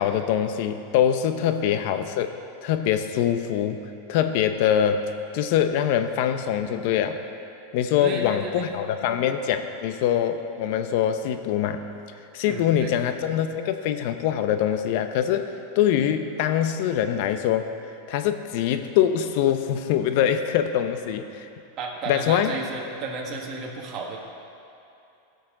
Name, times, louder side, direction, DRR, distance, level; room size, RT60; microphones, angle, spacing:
voice 1, 0.0-2.3 2.6-3.8 4.1-5.0 5.3-7.2 7.7-11.8 12.3-15.5 15.8-17.7 18.1-21.5 22.1-22.5, left 10 dB, 60° left, 8 dB, 0.7 m, -23 dB
voice 2, 8.0-8.7 12.4-12.9 21.8-24.2, right 3 dB, 40° right, -1 dB, 1.7 m, -33 dB
15.5 x 6.6 x 3.8 m, 2.7 s
hypercardioid pair, 125°, 0 cm